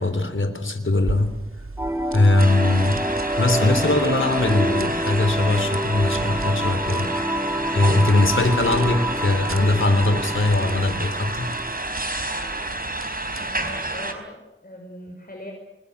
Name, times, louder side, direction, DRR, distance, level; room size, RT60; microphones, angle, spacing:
voice 1, 0.0-1.3 2.1-3.0 3.4-7.1 7.7-11.6, left 2 dB, 70° left, 9 dB, 3.5 m, -20 dB
sound 1, 1.0-13.9, right 3 dB, 85° right, 2.2 m, -38 dB
sound 2, 1.8-12.8, equal, 15° right, 4.4 m, -28 dB
sound 3, 2.4-14.1, right 2 dB, 45° right, 4.5 m, -30 dB
voice 2, 13.3-15.5, left 1 dB, 45° left, 2 dB, 5.5 m, -40 dB
28.0 x 21.0 x 8.3 m, 1.0 s
wide cardioid pair, 40°, 21 cm